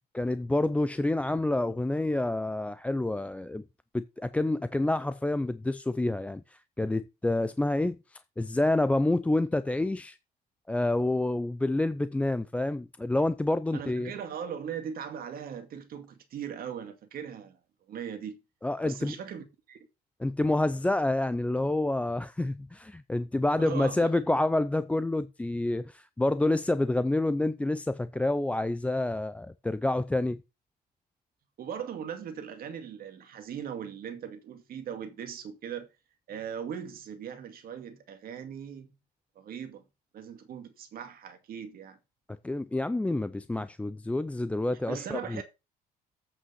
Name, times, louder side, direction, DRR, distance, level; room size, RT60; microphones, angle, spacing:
voice 1, 0.1-3.6 3.9-10.2 10.7-14.1 18.6-19.2 20.2-30.4 42.4-45.4, left 2 dB, 10° left, 0.4 m, -28 dB
voice 2, 13.7-17.6 17.9-18.4 18.8-19.8 23.6-24.1 31.6-35.9 36.3-38.9 39.4-39.8 40.1-42.0 44.7-45.4, right 8 dB, 60° right, 2.2 m, -39 dB
8.4 x 5.6 x 5.5 m
cardioid pair, 110°, 17 cm